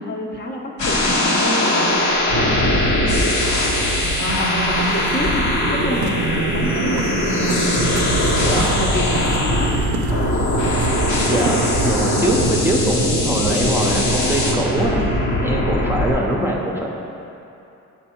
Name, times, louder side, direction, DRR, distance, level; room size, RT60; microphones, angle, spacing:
voice 1, 0.0-3.4 4.2-8.3 8.5-9.7, left 1 dB, 35° left, -1 dB, 0.9 m, -28 dB
sound 1, 0.8-16.1, left 1 dB, 70° left, 1.2 m, -20 dB
sound 2, 3.9-12.8, right 4 dB, 80° right, 0.5 m, -28 dB
voice 2, 8.4-8.7 11.3-15.0 15.4-16.9, right 1 dB, 5° right, -3 dB, 0.7 m, -22 dB
6.8 x 4.6 x 4.4 m, 2.8 s
cardioid pair, 90°, 30 cm